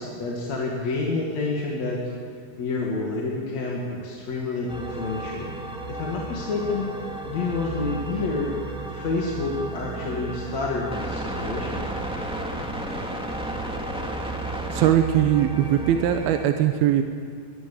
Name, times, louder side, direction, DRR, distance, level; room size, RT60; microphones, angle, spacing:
voice 1, 0.0-2.1 2.6-5.5 5.9-6.9 7.2-8.6 8.9-11.9, left 3 dB, 50° left, -3 dB, 3.1 m, -28 dB
sound 1, 4.7-16.4, right 2 dB, ahead, 1.4 m, -33 dB
voice 2, 14.7-17.0, right 10 dB, 80° right, 6 dB, 2.8 m, -20 dB
23.5 x 20.5 x 7.2 m, 2.2 s
omnidirectional pair, 4.4 m